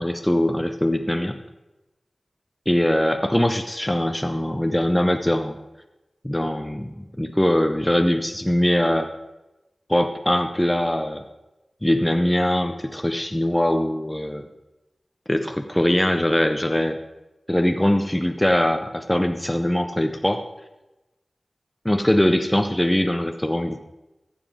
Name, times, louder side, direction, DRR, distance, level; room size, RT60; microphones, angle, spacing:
voice 1, 0.0-1.4 2.7-5.6 6.2-9.1 9.9-11.2 11.8-14.5 15.3-17.0 17.5-20.4 21.8-23.8, left 1 dB, 10° left, 6 dB, 0.6 m, -22 dB
14.0 x 7.1 x 3.6 m, 1.0 s
cardioid pair, 45°, 0 cm